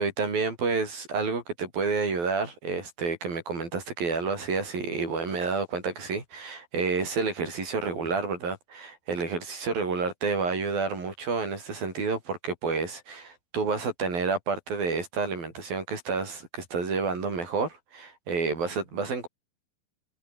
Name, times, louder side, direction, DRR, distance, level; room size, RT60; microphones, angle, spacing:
voice 1, 0.0-19.3, right 4 dB, 70° right, 8.4 m, -29 dB
omnidirectional pair, 4.3 m